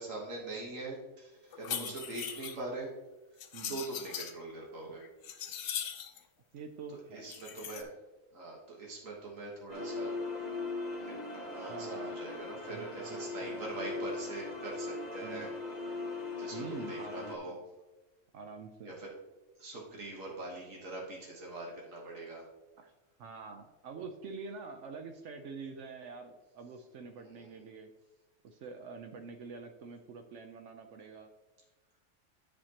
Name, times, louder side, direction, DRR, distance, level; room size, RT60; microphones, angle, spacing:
voice 1, 0.0-2.9 3.7-5.0 7.1-7.9 8.3-10.2 11.0-15.5 16.4-17.6 18.9-19.1 19.6-22.5 27.2-27.5, right 2 dB, 90° right, -3 dB, 1.7 m, -42 dB
sound 1, 1.5-2.6 3.4-4.3 4.9-6.2 7.2-7.8, left 8 dB, 80° left, 1.0 m, -40 dB
voice 2, 6.5-7.3 11.7-12.2 12.7-14.0 15.2-15.5 16.5-17.6 18.3-18.9 22.8-22.9 23.2-27.9 28.4-31.3, right 5 dB, 70° right, 5 dB, 0.9 m, -46 dB
sound 2, 9.7-17.4, left 3 dB, 35° left, 1.1 m, -39 dB
10.0 x 6.5 x 2.8 m, 1.1 s
omnidirectional pair, 1.3 m